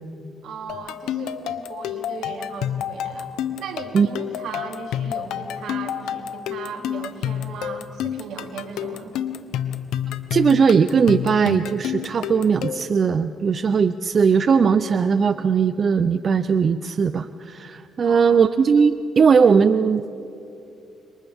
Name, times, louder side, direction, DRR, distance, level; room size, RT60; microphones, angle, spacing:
voice 1, 0.4-3.3 3.6-9.1 18.0-18.4, right 5 dB, 80° right, 2 dB, 2.9 m, -37 dB
sound 1, 0.7-13.0, left 9 dB, 90° left, 1.0 m, -29 dB
voice 2, 10.3-20.0, right 6 dB, 45° right, 11 dB, 0.6 m, -19 dB
29.5 x 26.0 x 3.6 m, 2.6 s
cardioid pair, 90°, 0 cm